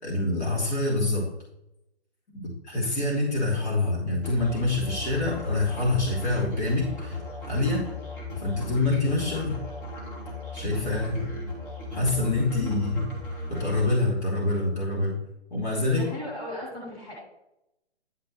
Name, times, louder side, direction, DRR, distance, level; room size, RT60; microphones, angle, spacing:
voice 1, 0.0-1.3 2.3-7.8 8.4-9.6 10.5-11.3 11.9-13.0 13.5-15.2 15.5-16.0, left 2 dB, 75° left, -4 dB, 3.2 m, -26 dB
Musical instrument, 4.2-13.8, left 2 dB, 50° left, 3.2 m, -36 dB
voice 2, 15.8-17.1, left 1 dB, 15° left, -6 dB, 3.3 m, -37 dB
11.0 x 5.8 x 3.1 m, 0.86 s
hypercardioid pair, 140°, 33 cm